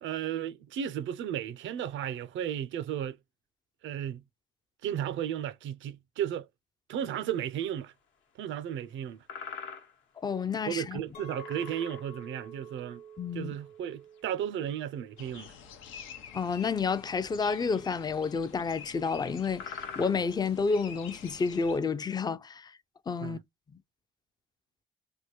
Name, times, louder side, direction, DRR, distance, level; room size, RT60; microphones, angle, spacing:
voice 1, 0.0-3.2 3.8-4.2 4.8-6.5 6.9-7.9 8.4-9.2 10.7-13.0 13.3-15.5 23.2-23.4, right 10 dB, 75° right, 0.5 m, -34 dB
sound 1, 7.2-7.3 8.8-8.9 9.3-10.0 10.4-10.5 11.3-12.2 13.4-13.5 13.8-14.2 15.4-15.5 17.2-17.3 17.6-17.8 18.4-18.7 19.1-19.3 19.6-20.4 21.5-21.6, left 6 dB, 75° left, 1.0 m, -43 dB
voice 2, 10.2-11.0 13.2-13.5 16.3-22.8 23.1-23.4, left 5 dB, 20° left, 0.3 m, -30 dB
Chink clink, 11.1-16.3, right 4 dB, 50° left, 1.0 m, -49 dB
sound 2, 15.2-21.8, left 7 dB, 90° left, 0.6 m, -48 dB
3.4 x 2.2 x 2.9 m
cardioid pair, 90°, 20 cm